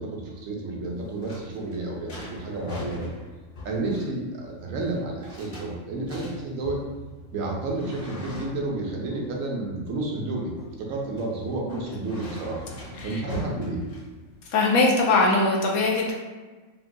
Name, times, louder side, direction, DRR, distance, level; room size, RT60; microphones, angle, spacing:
voice 1, 0.0-3.1 3.6-6.8 7.3-10.5 10.8-12.6 13.0-13.8, right 2 dB, 75° right, -1 dB, 1.0 m, -31 dB
sound 1, 0.8-14.5, equal, 40° left, 0.5 m, -41 dB
voice 2, 14.5-16.1, left 3 dB, 90° left, -1 dB, 1.1 m, -21 dB
3.6 x 2.2 x 2.6 m, 1.3 s
omnidirectional pair, 1.5 m